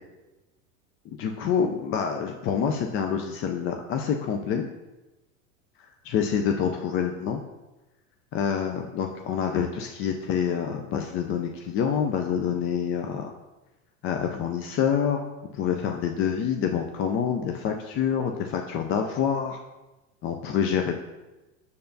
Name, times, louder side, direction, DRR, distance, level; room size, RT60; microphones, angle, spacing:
voice 1, 1.1-4.7 6.0-7.4 8.3-13.3 14.0-15.2 15.5-19.6 20.2-20.9, left 7 dB, 30° left, 4 dB, 0.4 m, -27 dB
6.7 x 6.6 x 2.7 m, 1.1 s
hypercardioid pair, 105°, 42 cm